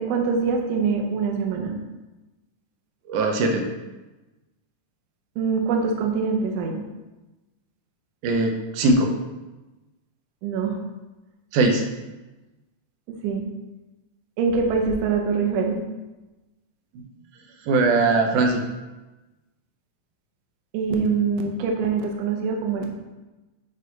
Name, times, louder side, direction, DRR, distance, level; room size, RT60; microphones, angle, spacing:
voice 1, 0.0-1.8 5.4-6.8 10.4-10.8 13.2-13.5 14.4-15.8 20.7-22.9, right 5 dB, 70° right, 2 dB, 1.7 m, -24 dB
voice 2, 3.1-3.7 8.2-9.1 11.5-11.8 17.7-18.6, right 3 dB, 90° right, 3 dB, 2.3 m, -20 dB
6.6 x 4.9 x 4.0 m, 1.1 s
omnidirectional pair, 3.5 m